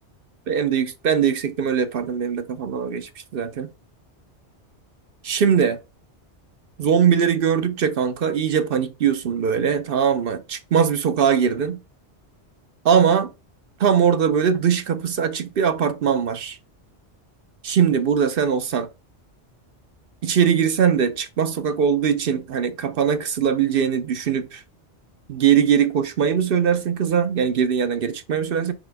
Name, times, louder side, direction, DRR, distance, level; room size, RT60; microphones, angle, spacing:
voice 1, 0.5-3.7 5.2-5.8 6.8-11.8 12.8-13.3 13.8-16.6 17.6-18.9 20.2-24.6 25.3-28.7, right 7 dB, 60° right, 0.8 m, -21 dB
6.1 x 4.8 x 3.4 m
omnidirectional pair, 1.2 m